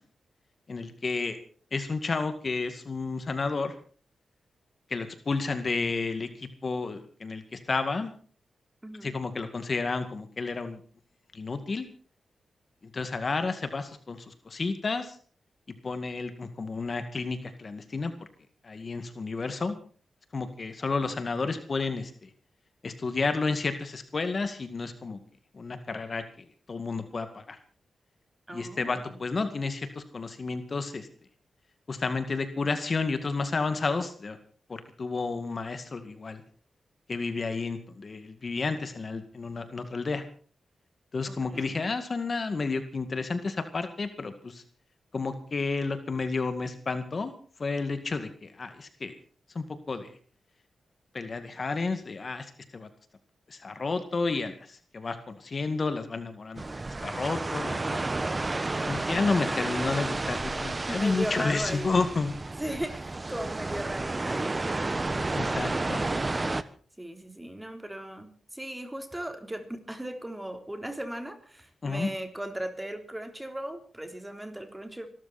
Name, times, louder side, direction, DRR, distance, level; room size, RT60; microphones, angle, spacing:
voice 1, 0.7-1.4 1.7-3.7 4.9-8.1 9.0-10.8 11.3-11.9 12.8-15.2 15.8-18.1 18.6-19.8 20.3-22.3 22.8-25.2 25.5-27.6 28.5-31.1 31.9-34.4 34.7-36.4 37.1-40.3 41.1-44.6 45.1-47.3 47.6-49.1 49.5-50.1 51.1-52.9 53.5-56.6 57.0-58.0 58.9-62.3 65.3-66.1 71.8-72.1, left 4 dB, 45° left, 9 dB, 2.0 m, -31 dB
voice 2, 8.8-9.1 28.5-29.2 41.3-41.7 59.3-59.6 60.7-61.9 62.6-64.8 67.0-75.1, right 1 dB, 10° right, 6 dB, 3.7 m, -37 dB
sound 1, 56.6-66.6, right 2 dB, 30° right, 1.2 m, -31 dB
25.0 x 13.5 x 4.3 m, 0.42 s
cardioid pair, 70°, 0 cm